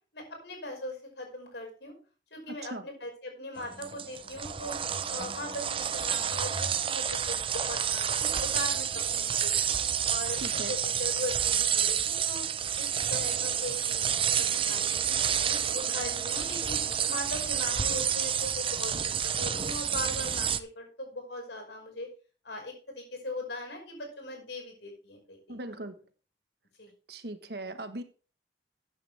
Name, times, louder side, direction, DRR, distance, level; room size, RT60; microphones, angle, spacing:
voice 1, 0.1-2.0 2.3-4.8 5.1-9.7 10.1-22.1 22.4-25.7 26.8-26.9, left 1 dB, 75° left, 3 dB, 5.5 m, -40 dB
sound 1, 3.6-20.6, right 8 dB, 30° right, 0.7 m, -29 dB
voice 2, 10.4-10.7 25.5-25.9 27.1-28.0, right 1 dB, 65° right, 9 dB, 1.4 m, -38 dB
14.0 x 9.2 x 3.5 m, 0.37 s
head